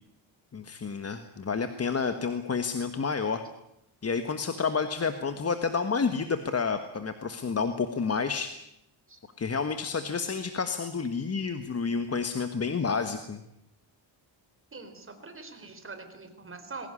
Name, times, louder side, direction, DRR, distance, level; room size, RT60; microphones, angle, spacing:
voice 1, 0.5-3.4 4.0-8.6 9.4-13.4, left 5 dB, 30° left, 9 dB, 1.4 m, -30 dB
voice 2, 14.7-16.9, right 4 dB, 25° right, 7 dB, 4.0 m, -43 dB
21.5 x 17.0 x 9.9 m, 0.80 s
cardioid pair, 130°, 48 cm